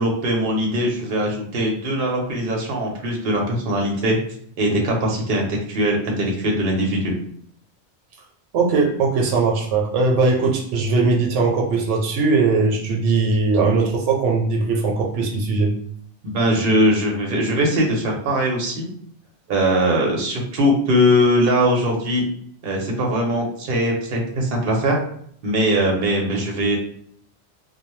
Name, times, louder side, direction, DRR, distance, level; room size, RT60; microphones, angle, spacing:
voice 1, 0.0-4.2 4.6-7.1 16.2-18.9 19.5-22.2 22.6-25.0 25.4-26.8, equal, 55° right, 0 dB, 0.8 m, -21 dB
voice 2, 8.5-15.7, right 4 dB, 80° right, 1 dB, 0.9 m, -19 dB
2.2 x 2.1 x 3.0 m, 0.62 s
omnidirectional pair, 1.2 m